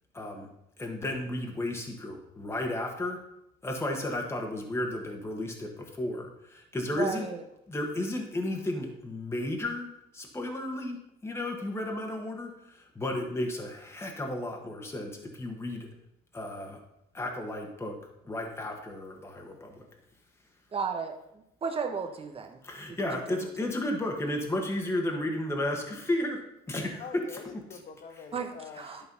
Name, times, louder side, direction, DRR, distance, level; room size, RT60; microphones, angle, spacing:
voice 1, 0.1-0.5 0.8-3.2 3.6-5.7 6.0-6.3 6.7-7.3 7.7-9.9 10.1-11.0 11.2-12.5 12.9-15.1 15.4-15.9 16.3-16.8 17.1-17.9 18.3-19.7 22.6-26.4 26.7-27.4 27.7-27.8, left 1 dB, 15° left, 1 dB, 1.6 m, -33 dB
voice 2, 6.9-7.4 20.7-21.1 21.6-22.6 28.3-29.0, right 5 dB, 35° right, 5 dB, 1.3 m, -33 dB
voice 3, 27.0-29.1, left 6 dB, 50° left, 7 dB, 1.1 m, -45 dB
11.0 x 4.9 x 5.4 m, 0.83 s
cardioid pair, 110°, 17 cm